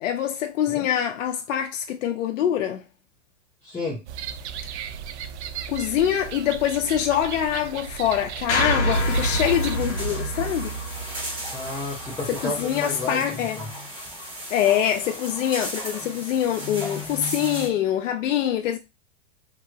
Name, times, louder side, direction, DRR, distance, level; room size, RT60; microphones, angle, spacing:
voice 1, 0.0-2.8 5.7-10.8 12.3-13.6 14.5-18.8, left 10 dB, 80° left, 0.5 m, -24 dB
voice 2, 3.6-4.0 11.5-13.2 13.6-13.7, left 2 dB, 5° left, 0.5 m, -31 dB
sound 1, 4.1-9.8, right 8 dB, 65° right, 0.5 m, -35 dB
sound 2, 8.5-12.8, equal, 60° left, 1.2 m, -27 dB
sound 3, 8.9-17.7, left 1 dB, 10° right, 1.4 m, -35 dB
2.9 x 2.7 x 2.4 m
supercardioid pair, 150°, 37 cm